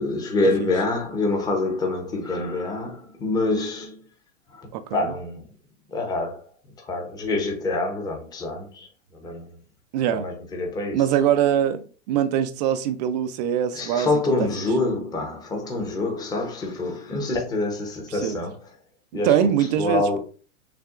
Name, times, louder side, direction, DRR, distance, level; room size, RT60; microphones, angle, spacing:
voice 1, 0.0-4.0 4.5-5.4 5.9-6.4 6.9-8.9 9.1-9.5 10.1-11.0 13.7-18.6 19.1-19.3 19.8-20.2, left 2 dB, 10° left, 0.8 m, -26 dB
voice 2, 4.7-5.1 9.9-10.3 10.9-14.1 18.1-18.4 19.2-20.2, right 10 dB, 35° right, 0.4 m, -23 dB
6.6 x 2.2 x 2.4 m
hypercardioid pair, 140°, 39 cm